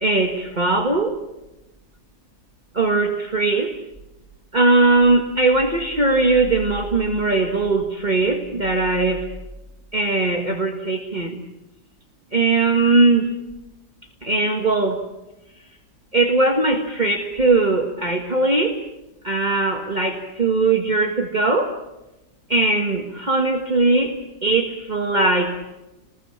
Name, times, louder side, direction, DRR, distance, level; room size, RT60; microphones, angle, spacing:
voice 1, 0.0-1.2 2.7-3.7 4.5-9.3 9.9-11.4 12.3-13.4 14.2-15.0 16.1-18.8 19.2-21.8 22.5-25.6, right 3 dB, 20° right, 1 dB, 1.2 m, -20 dB
30.0 x 20.5 x 7.4 m, 0.99 s
omnidirectional pair, 3.5 m